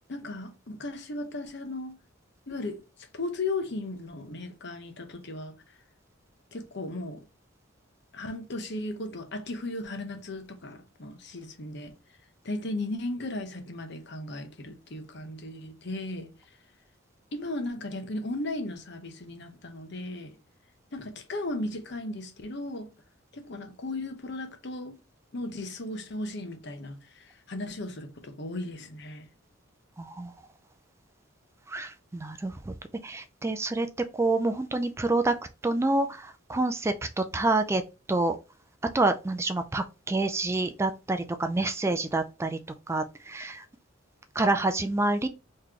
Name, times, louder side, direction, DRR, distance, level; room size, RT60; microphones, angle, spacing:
voice 1, 0.1-2.0 2.5-2.8 3.1-5.5 6.5-7.2 8.1-11.9 12.4-16.3 17.3-20.4 20.9-22.9 23.3-25.0 25.3-29.3, left 2 dB, 60° left, 0.9 m, -36 dB
voice 2, 30.0-30.3 31.7-32.7 33.0-33.9 34.1-35.4 35.6-37.8 38.1-38.4 38.9-42.6 42.9-43.6 44.4-45.3, right 2 dB, 15° right, 0.3 m, -27 dB
4.0 x 3.1 x 2.9 m
head